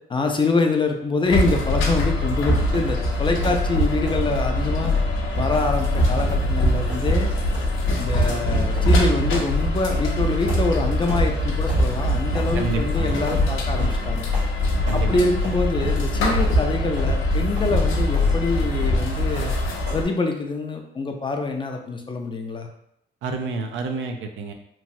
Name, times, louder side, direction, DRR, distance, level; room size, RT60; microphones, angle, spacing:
voice 1, 0.1-5.0 5.4-7.3 7.9-14.3 14.9-19.5 19.9-22.7, left 3 dB, 25° left, 3 dB, 0.4 m, -25 dB
sound 1, 1.2-20.0, left 1 dB, 85° left, 0.6 m, -22 dB
sound 2, 2.7-3.0 3.4-3.6 4.1-4.3 4.8-5.0 5.5-5.7 6.2-6.4 6.9-7.2 7.5-7.8 8.3-8.4 8.8-9.0 9.3-9.5 9.9-10.1 10.5-10.7 11.1-11.3 11.7-11.9 12.3-12.5 13.3-13.4 13.8-14.0 14.3-14.5 14.9-15.1 15.4-16.0 16.4-16.6 17.0-17.1 17.6-17.7 18.1-18.4 18.8-19.0 19.3-19.6 19.9-20.1, equal, 65° right, 1.4 m, -37 dB
voice 2, 12.5-13.2 14.9-15.5 23.2-24.5, right 4 dB, 80° right, 4 dB, 0.5 m, -29 dB
3.0 x 2.3 x 2.6 m, 0.79 s
cardioid pair, 90°, 20 cm